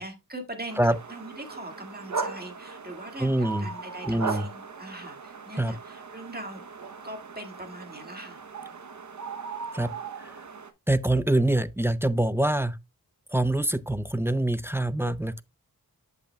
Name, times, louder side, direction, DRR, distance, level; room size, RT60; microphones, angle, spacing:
voice 1, 0.0-6.6 7.0-8.4, right 1 dB, 25° right, 1.8 m, -41 dB
sound 1, 0.7-10.7, right 5 dB, 50° right, 0.8 m, -38 dB
voice 2, 3.2-3.7 4.0-4.5 5.6-5.7 9.7-9.9 10.2-10.3 10.9-12.8 13.3-15.4, right 1 dB, 5° right, 0.4 m, -25 dB
7.7 x 6.7 x 2.2 m
wide cardioid pair, 55°, 38 cm